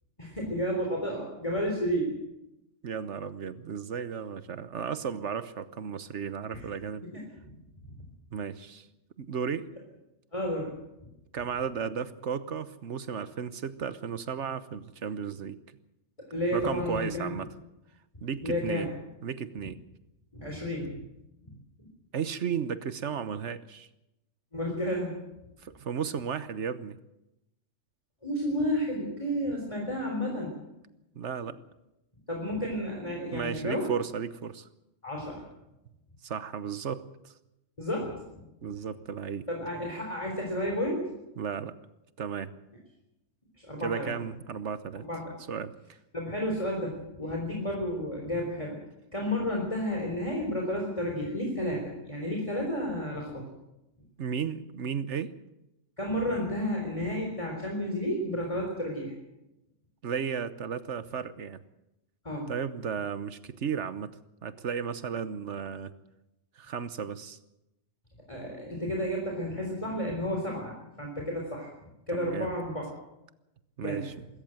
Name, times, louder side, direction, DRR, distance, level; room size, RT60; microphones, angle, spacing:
voice 1, 0.2-2.2 6.5-6.7 7.0-7.5 10.3-10.7 16.2-17.3 18.4-18.9 20.3-20.9 21.4-21.5 24.5-25.1 28.2-30.5 32.3-33.8 35.0-35.5 37.8-38.2 39.5-41.1 43.6-44.1 45.0-45.3 46.1-48.8 49.1-53.4 56.0-59.1 62.2-62.5 68.3-71.7 72.1-72.9 73.8-74.0, equal, 25° left, 0 dB, 4.0 m, -31 dB
voice 2, 2.8-7.0 8.3-8.9 9.2-9.7 11.3-15.6 16.5-17.5 18.2-18.9 19.2-19.8 22.1-23.9 25.6-27.0 31.2-31.6 33.3-34.7 36.2-37.3 38.6-39.5 41.4-41.7 42.2-42.5 43.8-45.0 45.5-45.7 54.2-55.3 60.0-61.6 62.5-64.1 64.4-65.9 66.6-67.4 72.1-72.5 73.8-74.1, right 7 dB, 75° right, 13 dB, 1.3 m, -34 dB
24.5 x 14.0 x 7.8 m, 0.92 s
omnidirectional pair, 1.2 m